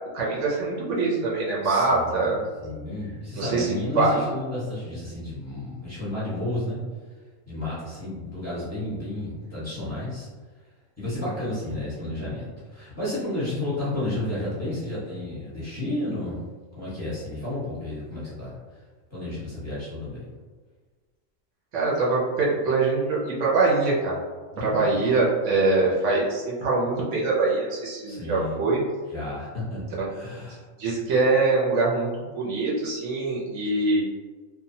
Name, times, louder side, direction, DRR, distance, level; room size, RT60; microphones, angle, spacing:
voice 1, 0.1-2.4 3.4-4.2 21.7-24.2 24.6-28.8 30.8-34.0, right 3 dB, 70° right, -5 dB, 0.9 m, -23 dB
voice 2, 1.6-6.8 7.5-10.3 11.0-16.4 16.7-18.6 19.1-20.3 24.5-25.2 28.0-28.6 29.1-29.8 30.1-30.6, left 1 dB, 15° left, -10 dB, 0.9 m, -32 dB
2.7 x 2.2 x 2.7 m, 1.4 s
omnidirectional pair, 1.4 m